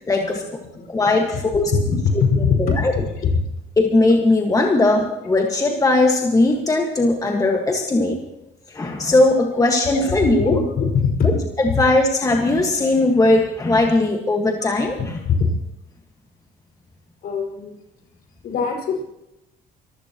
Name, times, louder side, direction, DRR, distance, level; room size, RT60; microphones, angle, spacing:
voice 1, 0.1-0.4 0.9-1.7 2.1-2.2 2.6-2.9 3.8-8.2 8.7-10.6 11.2-15.0, left 2 dB, 20° left, 2 dB, 1.7 m, -18 dB
voice 2, 0.7-2.6 2.9-3.0 9.9-11.3 14.6-14.7 15.0-15.5 17.2-17.7 18.4-19.0, left 5 dB, 65° left, 1 dB, 5.4 m, -22 dB
24.5 x 15.0 x 3.0 m, 0.91 s
cardioid pair, 110°, 17 cm